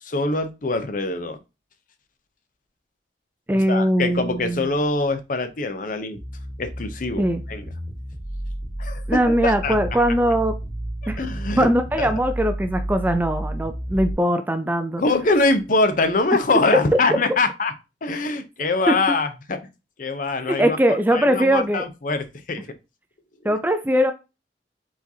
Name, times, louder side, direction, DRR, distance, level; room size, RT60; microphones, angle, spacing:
voice 1, 0.0-1.4 3.7-6.2 6.6-7.6 8.8-10.0 11.0-11.7 12.0-12.1 15.0-17.7 18.0-19.6 20.0-20.8 21.1-22.7 23.4-23.5, left 3 dB, 45° left, 9 dB, 0.6 m, -24 dB
voice 2, 3.5-4.7 7.2-7.4 9.1-10.5 11.1-11.2 11.6-15.0 18.9-19.0 20.5-21.8 23.4-24.1, equal, 10° right, 8 dB, 0.4 m, -21 dB
sound 1, 6.1-14.1, right 1 dB, 10° left, 1.7 m, -31 dB
4.8 x 4.0 x 2.7 m, 0.27 s
head